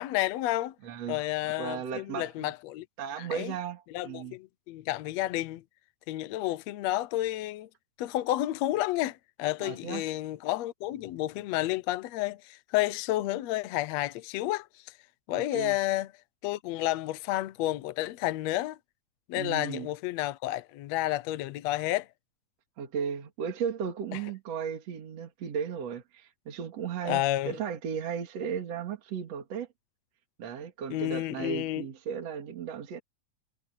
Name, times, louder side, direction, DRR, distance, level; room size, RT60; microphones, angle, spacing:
voice 1, 0.0-0.8 1.1-2.9 3.2-3.5 3.9-5.6 6.1-7.7 8.0-14.9 15.3-16.1 16.4-18.8 19.3-22.1 24.1-24.2 27.1-27.6 30.9-31.9, left 15 dB, 70° left, 1.8 m, -31 dB
voice 2, 0.8-2.5 3.0-4.4 9.6-10.0 15.3-15.8 19.4-19.9 22.8-29.7 30.4-33.0, right 7 dB, 60° right, 3.2 m, -35 dB
omnidirectional pair, 3.4 m